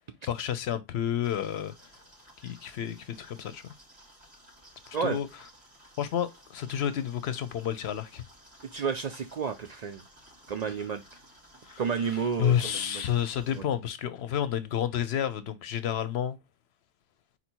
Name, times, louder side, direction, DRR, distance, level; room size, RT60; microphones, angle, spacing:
voice 1, 0.3-1.7 2.4-3.6 4.9-5.3 6.0-8.2 11.6-11.8 12.4-16.4, left 10 dB, 75° left, 0.9 m, -30 dB
sound 1, 1.2-13.6, equal, 40° right, 2.6 m, -56 dB
voice 2, 8.7-10.0 10.5-11.0 11.8-13.0 13.5-13.6, right 6 dB, 55° right, 0.5 m, -31 dB
4.3 x 2.7 x 4.4 m
omnidirectional pair, 1.1 m